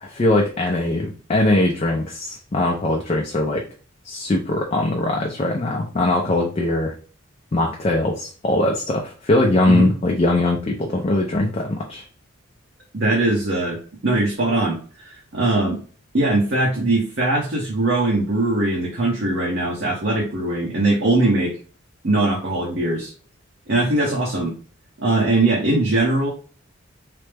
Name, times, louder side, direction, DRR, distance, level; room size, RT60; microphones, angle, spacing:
voice 1, 0.0-3.6 4.0-6.9 7.5-12.0, left 2 dB, 30° left, 0 dB, 0.4 m, -21 dB
voice 2, 12.9-14.8 15.0-15.8 16.1-21.5 22.0-23.1 23.7-24.5 25.0-26.3, right 2 dB, 55° right, -3 dB, 0.7 m, -21 dB
3.2 x 2.0 x 3.2 m, 0.39 s
head